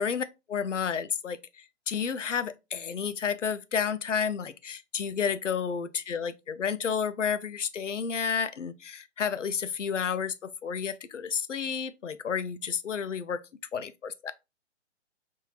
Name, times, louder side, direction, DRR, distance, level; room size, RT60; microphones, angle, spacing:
voice 1, 0.0-13.4 13.7-14.3, left 7 dB, 80° left, 0.5 m, -31 dB
4.3 x 2.7 x 2.7 m
figure-of-eight pair, 125°, 36 cm